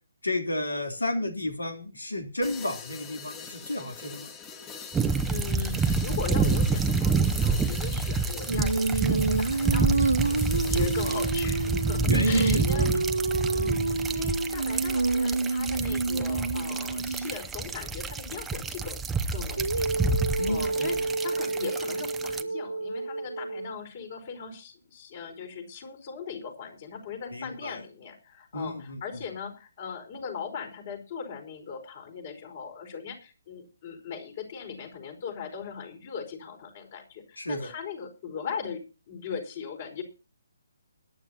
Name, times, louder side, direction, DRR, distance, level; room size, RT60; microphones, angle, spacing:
voice 1, 0.2-4.3 11.0-11.2 12.0-13.0 20.4-20.9 27.3-27.8 28.5-29.0 37.4-37.7, left 1 dB, 85° left, 4 dB, 3.2 m, -32 dB
sound 1, 2.4-12.3, left 6 dB, 20° left, 1.9 m, -44 dB
sound 2, 4.9-22.4, right 4 dB, 10° right, 0.8 m, -28 dB
voice 2, 5.2-10.3 10.7-12.9 13.5-19.0 19.3-19.9 20.5-40.0, left 6 dB, 45° left, 3 dB, 4.9 m, -39 dB
Female singing, 8.5-17.4 19.6-23.8, right 3 dB, 80° right, 0.5 m, -28 dB
21.5 x 10.0 x 2.9 m, 0.33 s
figure-of-eight pair, 140°, 0 cm